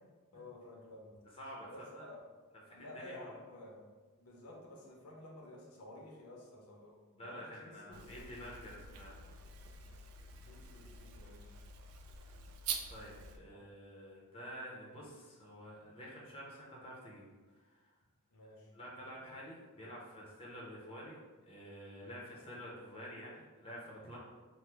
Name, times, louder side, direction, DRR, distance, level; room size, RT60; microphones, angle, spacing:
voice 1, 0.3-1.2 1.6-2.2 2.7-3.8 4.2-8.4 10.5-11.5 13.5-13.6 18.3-18.7, left 1 dB, 70° left, -2 dB, 0.6 m, -52 dB
voice 2, 1.3-1.7 1.9-2.1 2.6-3.4 7.2-9.2 12.9-17.3 17.6-17.9 18.7-24.2, equal, 25° left, -4 dB, 0.6 m, -49 dB
sound 1, 7.9-13.4, right 5 dB, 65° right, 0.3 m, -46 dB
3.0 x 2.0 x 3.3 m, 1.3 s
head